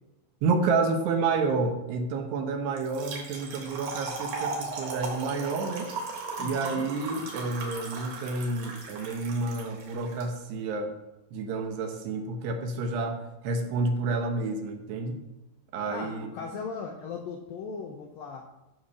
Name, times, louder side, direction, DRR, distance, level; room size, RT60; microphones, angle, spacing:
voice 1, 0.4-5.9 6.4-10.9 11.3-15.2 15.7-16.3, right 3 dB, 75° right, 5 dB, 2.9 m, -29 dB
Trickle dribble / Fill (with liquid), 2.8-10.2, right 4 dB, 55° right, 4.5 m, -37 dB
voice 2, 6.4-7.3 15.9-18.4, left 5 dB, 80° left, 1 dB, 2.1 m, -38 dB
14.0 x 5.0 x 6.9 m, 0.98 s
omnidirectional pair, 5.3 m